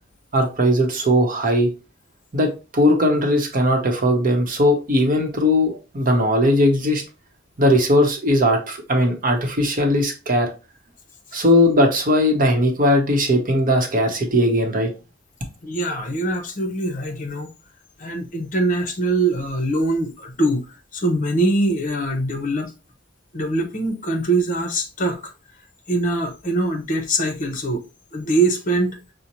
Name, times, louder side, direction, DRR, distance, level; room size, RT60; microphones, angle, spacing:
voice 1, 0.3-1.7 2.3-7.0 7.6-10.5 11.3-14.9, equal, 45° right, 0.8 m, -18 dB
voice 2, 15.6-17.5 18.0-22.7 23.3-25.2 25.9-27.8 28.1-29.0, right 2 dB, 45° left, 0.8 m, -23 dB
5.2 x 2.1 x 2.9 m
head